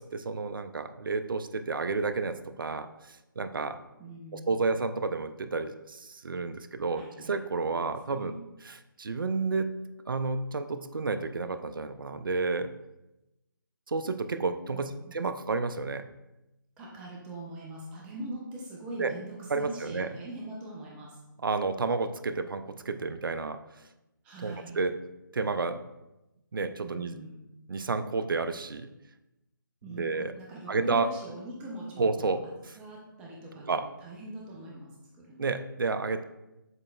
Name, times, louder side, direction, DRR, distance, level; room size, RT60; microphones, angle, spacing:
voice 1, 0.0-3.8 4.3-8.3 8.6-9.7 10.1-12.7 13.9-16.1 19.0-19.1 19.5-20.1 21.4-23.6 24.4-25.0 25.3-25.8 26.5-27.2 27.7-28.9 29.9-30.3 30.7-31.1 32.0-32.8 33.7-33.9 35.4-36.2, right 4 dB, 70° right, 10 dB, 0.4 m, -31 dB
voice 2, 4.0-4.7 6.9-7.4 7.6-8.3 14.7-15.2 16.8-21.2 24.2-24.8 26.8-27.4 29.8-32.4 32.8-35.5, right 1 dB, 10° right, -3 dB, 0.4 m, -42 dB
7.3 x 3.1 x 2.2 m, 0.97 s
figure-of-eight pair, 145°, 12 cm